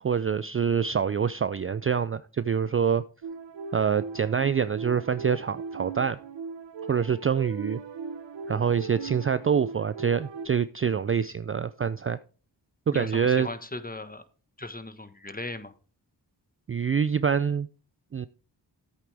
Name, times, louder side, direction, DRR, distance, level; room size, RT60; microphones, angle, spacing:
voice 1, 0.0-3.0 3.7-6.2 6.9-7.8 8.5-12.2 12.9-13.5 16.7-17.7 18.1-18.3, right 7 dB, 30° right, 0.4 m, -26 dB
sound 1, 3.2-10.5, right 5 dB, 85° right, 1.0 m, -39 dB
voice 2, 12.9-14.2 14.6-15.7, left 2 dB, 20° left, 1.3 m, -37 dB
11.0 x 8.4 x 3.4 m
cardioid pair, 40°, 43 cm